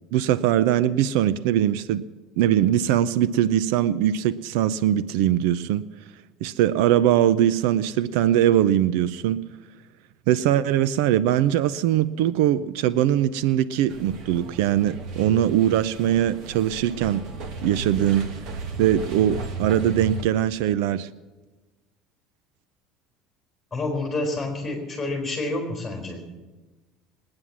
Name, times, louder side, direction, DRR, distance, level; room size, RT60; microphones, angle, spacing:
voice 1, 0.1-2.0 2.4-5.8 6.4-9.4 10.3-17.2 17.6-18.3 18.8-21.1, right 11 dB, 75° right, 16 dB, 0.5 m, -21 dB
sound 1, 13.9-20.2, right 3 dB, 45° right, 1.3 m, -35 dB
voice 2, 23.7-26.4, left 2 dB, 5° left, 1 dB, 4.2 m, -29 dB
20.0 x 9.6 x 7.3 m, 1.2 s
cardioid pair, 180°, 0 cm